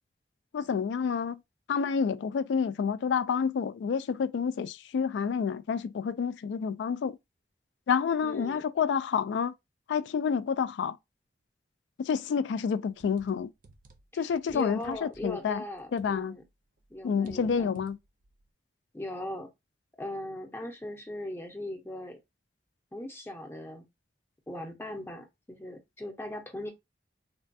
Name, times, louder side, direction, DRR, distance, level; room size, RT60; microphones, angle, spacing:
voice 1, 0.5-1.4 1.7-7.2 7.9-9.5 9.9-11.0 12.0-13.5 14.1-15.6 15.9-16.4 17.0-18.0, left 6 dB, 90° left, 0.3 m, -29 dB
voice 2, 8.2-8.7 14.1-16.4 16.9-17.7 18.9-19.5 20.0-22.2 22.9-23.8 24.5-26.7, left 1 dB, 15° left, 0.5 m, -39 dB
sound 1, 12.9-16.5 16.8-18.4, right 2 dB, 50° right, 0.5 m, -56 dB
3.2 x 2.2 x 2.6 m
head